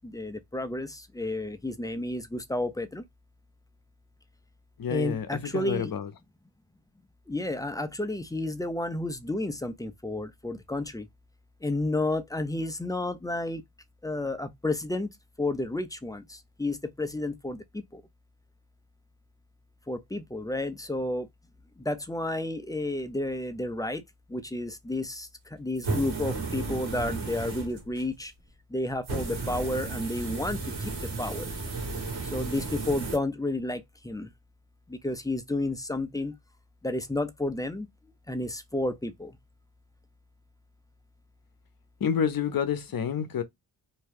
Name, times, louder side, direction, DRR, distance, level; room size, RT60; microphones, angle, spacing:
voice 1, 0.0-3.0 4.9-5.9 7.3-11.1 11.6-13.6 14.0-15.1 15.4-18.0 19.9-21.3 21.8-24.0 24.3-28.3 28.7-31.6 32.3-34.3 34.9-36.4 36.8-37.9 38.3-39.4, left 2 dB, 10° left, 0.4 m, -31 dB
voice 2, 4.8-6.1 42.0-43.4, left 7 dB, 55° left, 0.7 m, -29 dB
sound 1, 25.8-28.1 29.0-33.2, right 3 dB, 60° right, 1.5 m, -34 dB
2.7 x 2.2 x 3.4 m
cardioid pair, 70°, 42 cm